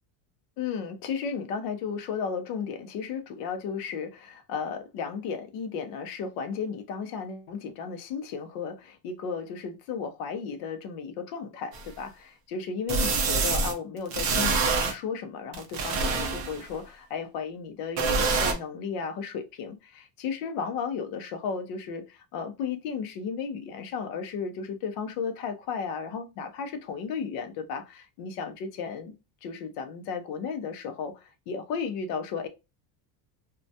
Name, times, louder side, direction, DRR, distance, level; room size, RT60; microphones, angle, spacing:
voice 1, 0.6-29.1 29.4-32.5, left 6 dB, 50° left, 0.5 m, -34 dB
sound 1, 11.7-11.8 12.9-13.7 14.1-14.9 15.5-16.7 18.0-18.5, right 4 dB, 40° right, 0.5 m, -26 dB
2.2 x 2.1 x 2.6 m
cardioid pair, 165°, 48 cm